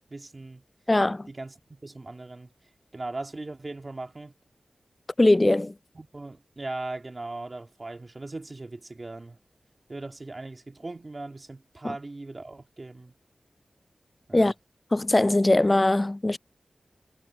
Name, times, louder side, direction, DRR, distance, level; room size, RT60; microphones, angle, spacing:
voice 1, 0.1-0.6 1.3-2.5 2.9-4.3 5.9-9.4 9.9-13.1 14.3-14.5, right 2 dB, 40° right, 2.2 m, -39 dB
voice 2, 0.9-1.3 5.2-5.7 14.3-14.5 14.9-16.4, left 2 dB, 30° left, 0.4 m, -21 dB
wide cardioid pair, 60°, 0 cm